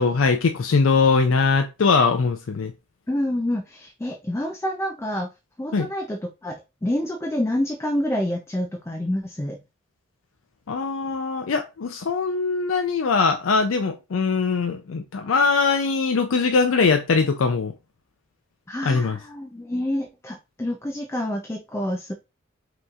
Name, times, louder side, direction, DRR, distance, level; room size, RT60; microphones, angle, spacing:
voice 1, 0.0-2.7 5.7-5.9 10.7-17.7 18.8-19.2, left 4 dB, 80° left, 0.5 m, -21 dB
voice 2, 3.1-5.3 5.6-9.6 18.7-22.1, left 1 dB, 15° left, 0.4 m, -28 dB
5.3 x 3.0 x 2.4 m
head